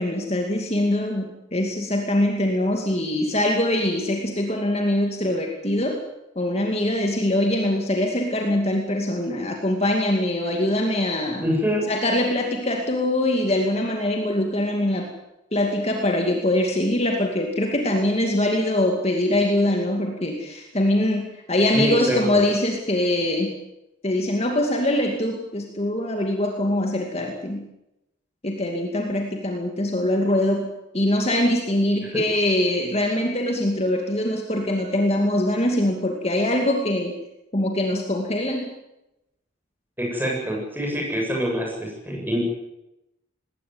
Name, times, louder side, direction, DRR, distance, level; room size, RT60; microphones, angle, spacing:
voice 1, 0.0-6.0 6.4-11.4 11.9-15.1 15.5-23.5 24.0-27.7 28.4-30.7 30.9-37.2 37.5-38.7, left 1 dB, 30° left, 2 dB, 2.5 m, -23 dB
voice 2, 11.4-11.9 21.7-22.4 32.1-32.2 40.0-42.4, equal, 10° right, -1 dB, 7.8 m, -25 dB
20.0 x 17.5 x 9.5 m, 0.90 s
head